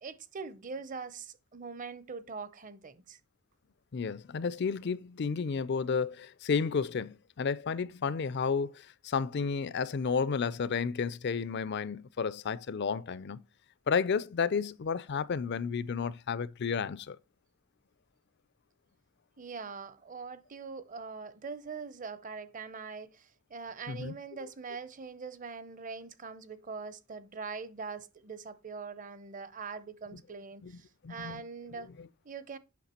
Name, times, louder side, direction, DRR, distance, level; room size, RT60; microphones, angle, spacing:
voice 1, 0.0-3.2 19.4-31.9 32.2-32.6, right 5 dB, 35° right, 0.6 m, -42 dB
voice 2, 3.9-13.4 13.9-17.2 23.9-24.1 30.6-31.4 32.0-32.1, left 5 dB, 50° left, 0.4 m, -32 dB
8.5 x 5.7 x 4.2 m
head